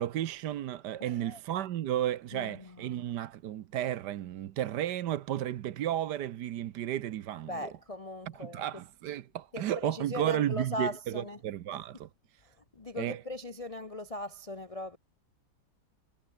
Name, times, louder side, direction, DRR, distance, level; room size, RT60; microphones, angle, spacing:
voice 1, 0.0-7.7 8.4-12.4 13.0-13.2, right 12 dB, 65° right, 1.3 m, -33 dB
voice 2, 1.0-1.4 2.3-3.2 7.5-8.6 9.5-11.4 12.4-15.0, left 1 dB, 35° left, 0.6 m, -39 dB
omnidirectional pair, 2.0 m